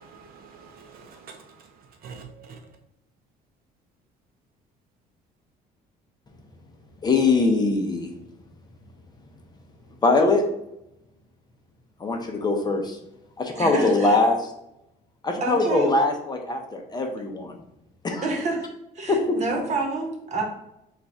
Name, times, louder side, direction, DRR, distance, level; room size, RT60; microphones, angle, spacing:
voice 1, 0.0-2.7, right 5 dB, 60° right, 0.5 m, -46 dB
voice 2, 7.0-8.1 10.0-10.4 12.0-13.0 13.4-14.5 15.2-17.5 18.0-18.2 19.1-19.4, left 3 dB, 25° left, 0.6 m, -22 dB
voice 3, 13.5-14.2 15.4-15.9 18.2-18.7 18.9-20.4, right 3 dB, 40° right, 1.1 m, -28 dB
3.8 x 2.4 x 4.3 m
cardioid pair, 110°, 17 cm